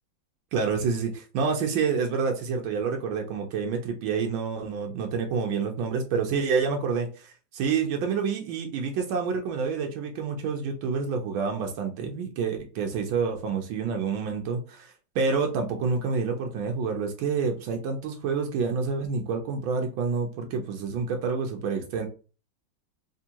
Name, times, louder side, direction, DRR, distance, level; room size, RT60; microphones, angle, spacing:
voice 1, 0.5-22.1, right 5 dB, 85° right, 3 dB, 1.4 m, -28 dB
3.5 x 3.3 x 2.8 m, 0.36 s
omnidirectional pair, 2.1 m